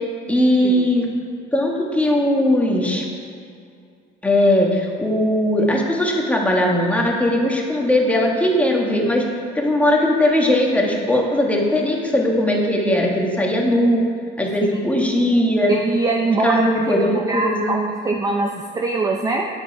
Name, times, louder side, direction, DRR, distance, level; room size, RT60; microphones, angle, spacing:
voice 1, 0.3-1.1 1.5-3.0 4.2-9.2 9.5-14.0 14.4-15.7 16.4-17.7, left 1 dB, 5° left, -1 dB, 1.6 m, -19 dB
voice 2, 15.7-19.5, right 3 dB, 20° right, 1 dB, 0.6 m, -23 dB
9.9 x 8.9 x 4.8 m, 2.4 s
cardioid pair, 140°, 20 cm